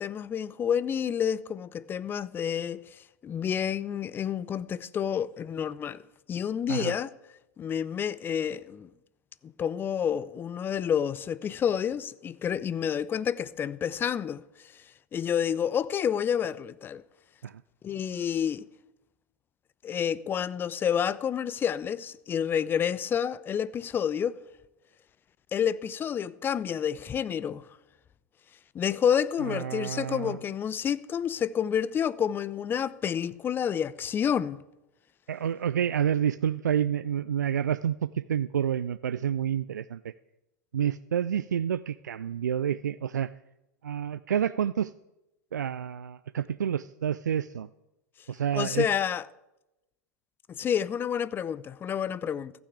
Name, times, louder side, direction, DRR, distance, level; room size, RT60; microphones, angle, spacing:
voice 1, 0.0-6.0 6.3-7.1 7.6-8.9 9.4-14.4 14.7-14.8 15.1-17.0 17.8-18.6 19.8-24.4 25.5-27.7 28.7-34.6 48.5-49.2 50.5-52.5, left 8 dB, 20° left, 0.5 m, -29 dB
voice 2, 29.4-30.4 35.3-40.1 40.7-43.3 43.8-44.9 45.5-47.7 48.3-48.9, right 9 dB, 80° right, 0.4 m, -29 dB
14.5 x 6.2 x 8.5 m
figure-of-eight pair, 95°, 9 cm